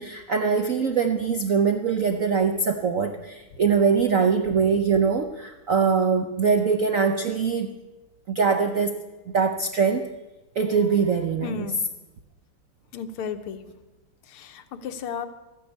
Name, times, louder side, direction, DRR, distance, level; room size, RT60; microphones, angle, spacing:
voice 1, 0.0-7.7 8.3-8.9 9.3-10.1 10.6-11.7, right 5 dB, 70° right, 6 dB, 0.7 m, -22 dB
voice 2, 11.4-11.8 12.9-13.7 14.2-15.3, left 6 dB, 80° left, 9 dB, 1.8 m, -34 dB
13.5 x 9.7 x 8.1 m, 1.1 s
omnidirectional pair, 2.4 m